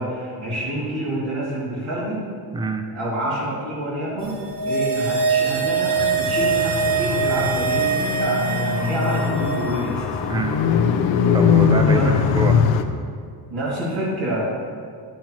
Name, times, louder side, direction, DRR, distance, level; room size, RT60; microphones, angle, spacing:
voice 1, 0.0-2.2 2.9-4.4 4.6-10.2 11.8-12.1 13.5-14.4, right 1 dB, 60° right, -8 dB, 2.4 m, -27 dB
voice 2, 2.5-2.9 10.3-10.6 11.3-12.6, right 2 dB, 10° right, 6 dB, 0.4 m, -25 dB
sound 1, 4.3-9.8 10.0-10.1, right 5 dB, 85° right, 2.3 m, -23 dB
Car, 5.9-12.8, left 7 dB, 75° left, 0.7 m, -21 dB
12.0 x 7.4 x 2.9 m, 2.1 s
cardioid pair, 145°, 45 cm